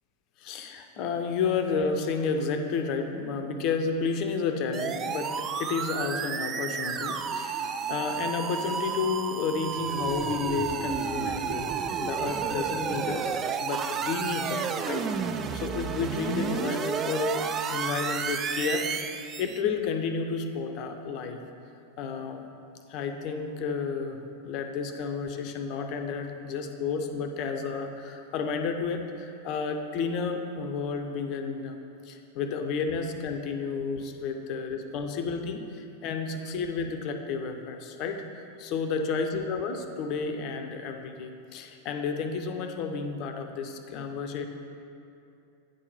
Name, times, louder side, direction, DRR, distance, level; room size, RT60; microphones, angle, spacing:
voice 1, 0.4-15.1 15.5-18.9 19.4-21.4 22.0-22.5 22.9-31.8 32.0-44.5, left 5 dB, 40° left, 6 dB, 0.7 m, -31 dB
sound 1, 4.7-19.6, right 6 dB, 25° right, 0.4 m, -31 dB
9.4 x 4.4 x 5.5 m, 2.7 s
figure-of-eight pair, 90°, 0 cm